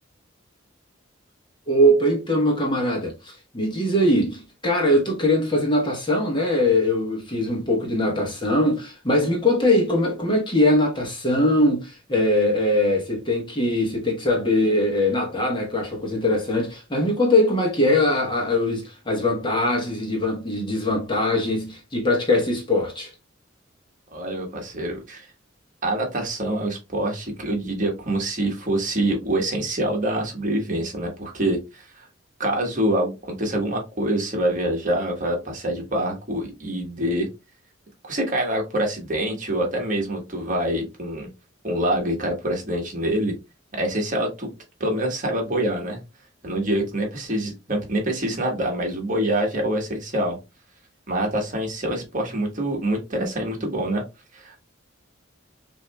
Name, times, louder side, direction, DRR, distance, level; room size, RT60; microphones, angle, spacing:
voice 1, 1.7-23.1, left 1 dB, 25° left, 1.1 m, -21 dB
voice 2, 24.1-25.3 25.8-32.0 32.4-37.3 38.1-41.3 41.6-43.3 43.7-44.5 44.8-46.0 46.4-50.4 51.1-54.0 54.3-54.6, right 1 dB, 40° right, 1.3 m, -25 dB
6.1 x 2.7 x 2.2 m
head